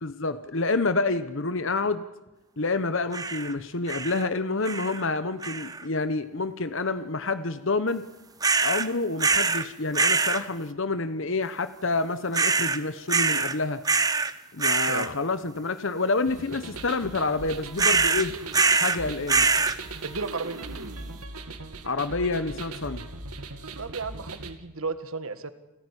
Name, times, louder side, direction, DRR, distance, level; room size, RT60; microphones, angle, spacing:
voice 1, 0.0-2.0 2.6-8.0 8.6-13.8 14.5-18.3 18.8-19.5 21.8-23.0, left 3 dB, 55° left, 12 dB, 1.0 m, -28 dB
sound 1, 3.1-3.5 3.9-4.3 4.6-5.0 5.4-5.8 8.4-8.9 9.2-9.7 9.9-10.4 12.3-12.8 13.1-13.6 13.8-14.3 14.6-15.1 17.8-19.0 19.3-19.8, right 4 dB, 15° right, 0.8 m, -24 dB
sound 2, 16.3-24.5, right 3 dB, 85° right, 2.2 m, -39 dB
voice 2, 20.0-20.8 23.8-25.5, right 4 dB, 70° right, 11 dB, 1.8 m, -33 dB
29.0 x 15.5 x 9.9 m, 1.0 s
head